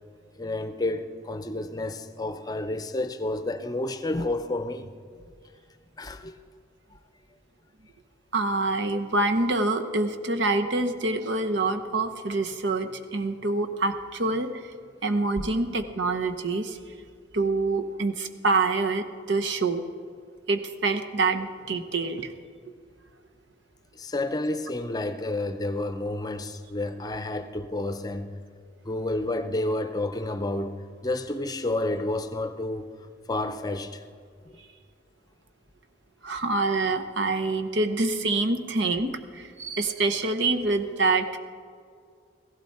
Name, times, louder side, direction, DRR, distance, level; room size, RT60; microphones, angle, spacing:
voice 1, 0.4-4.9 6.0-6.4 15.4-15.5 23.9-28.4 28.8-30.8 31.0-32.9 33.3-34.0 34.5-34.6, left 2 dB, 20° left, 0.6 m, -30 dB
voice 2, 8.3-14.7 15.0-16.8 17.3-19.8 20.5-22.3 36.2-41.4, right 3 dB, 85° right, 1.0 m, -26 dB
16.0 x 15.5 x 4.3 m
head